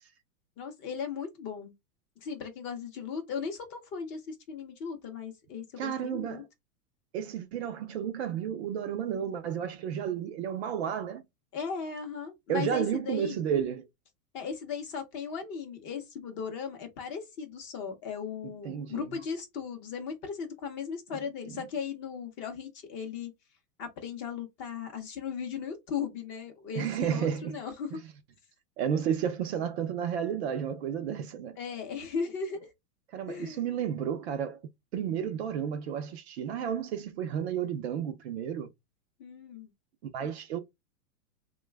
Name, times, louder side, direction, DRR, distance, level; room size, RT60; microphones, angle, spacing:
voice 1, 0.6-1.7 2.2-6.4 11.5-13.3 14.3-23.3 23.8-27.9 31.6-32.7 33.3-33.6 39.2-39.7, left 6 dB, 25° left, 0.6 m, -37 dB
voice 2, 5.8-6.4 7.1-11.2 12.5-13.9 18.4-19.2 21.5-21.6 26.7-27.6 27.9-28.0 28.8-31.6 33.1-38.7 40.0-40.6, right 8 dB, 45° right, 0.5 m, -32 dB
3.0 x 2.2 x 3.3 m
hypercardioid pair, 145°, 47 cm